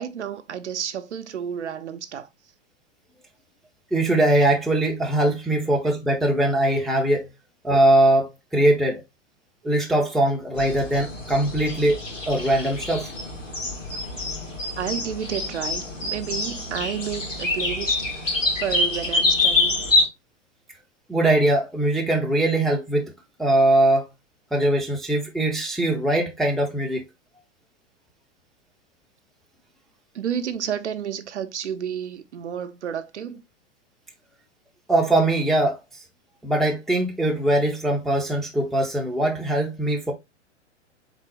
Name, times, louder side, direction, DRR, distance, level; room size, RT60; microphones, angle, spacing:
voice 1, 0.0-2.3 14.8-19.9 30.1-33.4, right 8 dB, 65° right, 0.7 m, -31 dB
voice 2, 3.9-7.3 7.6-9.0 9.6-12.0 12.3-13.1 21.1-23.0 23.4-24.1 24.5-27.0 34.9-35.8 36.4-40.1, right 1 dB, ahead, 0.5 m, -21 dB
sound 1, 10.5-20.1, left 2 dB, 90° left, 1.9 m, -26 dB
3.9 x 3.6 x 3.2 m
figure-of-eight pair, 100°, 37 cm